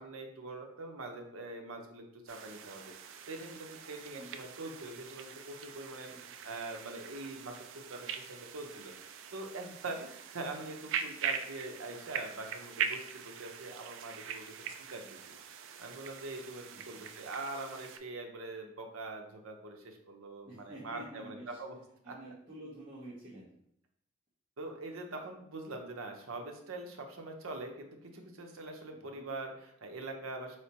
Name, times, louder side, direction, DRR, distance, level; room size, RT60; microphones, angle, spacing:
voice 1, 0.0-2.9 3.3-15.3 15.8-21.8 22.1-22.2 24.6-30.6, right 2 dB, 80° right, 3 dB, 0.7 m, -43 dB
sound 1, 2.3-18.0, right 7 dB, 65° right, 0.4 m, -42 dB
voice 2, 16.7-17.0 20.4-21.5 22.0-23.5 28.9-29.2, right 1 dB, 20° right, -11 dB, 1.1 m, -49 dB
4.9 x 3.2 x 2.8 m, 0.73 s
head